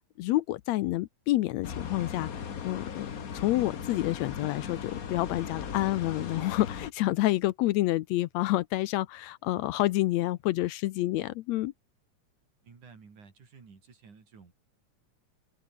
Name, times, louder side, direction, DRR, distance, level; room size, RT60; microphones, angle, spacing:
voice 1, 0.2-2.3 2.6-3.1 3.3-11.7, left 16 dB, 75° left, 1.8 m, -28 dB
sound 1, 1.6-6.9, left 7 dB, 45° left, 1.2 m, -38 dB
voice 2, 12.6-14.5, right 5 dB, 90° right, 6.0 m, -53 dB
omnidirectional pair, 3.4 m